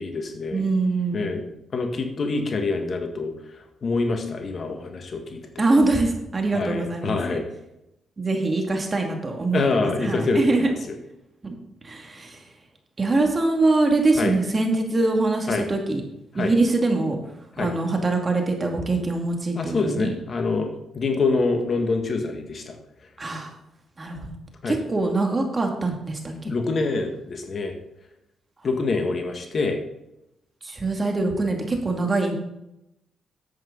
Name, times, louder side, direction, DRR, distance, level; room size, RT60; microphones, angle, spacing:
voice 1, 0.0-0.6 1.1-1.5 1.7-5.4 6.5-7.5 9.5-10.7 14.2-14.3 15.5-15.6 16.3-16.5 17.6-17.7 19.5-22.8 24.6-24.8 26.4-27.7 28.6-29.8, left 3 dB, 50° left, 5 dB, 1.8 m, -26 dB
voice 2, 0.5-1.3 5.6-7.4 8.2-10.7 11.4-11.6 11.8-12.4 13.0-16.0 16.3-17.2 17.6-20.2 23.2-23.5 24.0-24.3 24.7-26.5 30.6-32.3, right 2 dB, 35° right, 3 dB, 2.5 m, -23 dB
10.5 x 8.2 x 4.1 m, 0.86 s
supercardioid pair, 55°, 0 cm